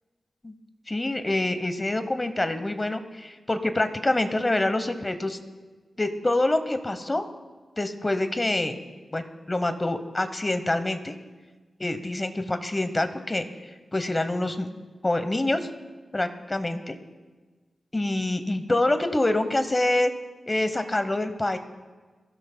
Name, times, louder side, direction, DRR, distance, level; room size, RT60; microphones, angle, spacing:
voice 1, 0.9-5.4 6.0-7.3 7.8-8.8 9.1-11.1 11.8-13.4 13.9-14.7 15.0-15.7 16.1-16.9 17.9-20.1 20.5-21.6, left 2 dB, 20° left, 9 dB, 0.9 m, -26 dB
24.0 x 15.5 x 2.2 m, 1.4 s
wide cardioid pair, 125°, 0 cm